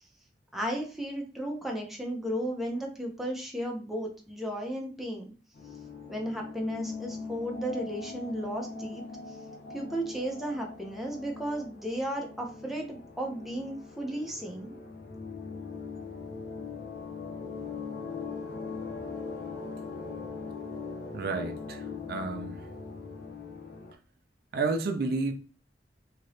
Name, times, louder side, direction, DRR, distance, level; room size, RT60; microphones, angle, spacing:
voice 1, 0.5-5.3 6.1-9.4 9.7-14.7, right 1 dB, ahead, 0.6 m, -34 dB
sound 1, 5.5-23.9, left 4 dB, 60° left, 0.6 m, -40 dB
voice 2, 21.1-22.7 24.5-25.3, right 3 dB, 60° right, 0.4 m, -31 dB
2.8 x 2.6 x 3.1 m
head